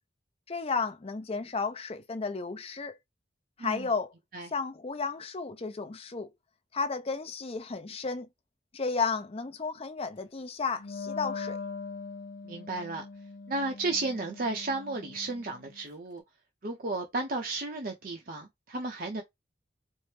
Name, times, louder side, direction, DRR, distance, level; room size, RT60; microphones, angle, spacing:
voice 1, 0.5-3.0 3.6-4.1 4.5-6.3 6.7-8.3 8.7-11.6, left 4 dB, 30° left, 0.6 m, -33 dB
voice 2, 3.6-3.9 4.3-4.5 12.4-13.0 13.5-16.2 16.6-19.2, right 2 dB, 50° right, 0.6 m, -33 dB
Wind instrument woodwind instrument, 10.7-15.8, left 4 dB, 60° left, 0.9 m, -41 dB
4.4 x 2.1 x 3.3 m
head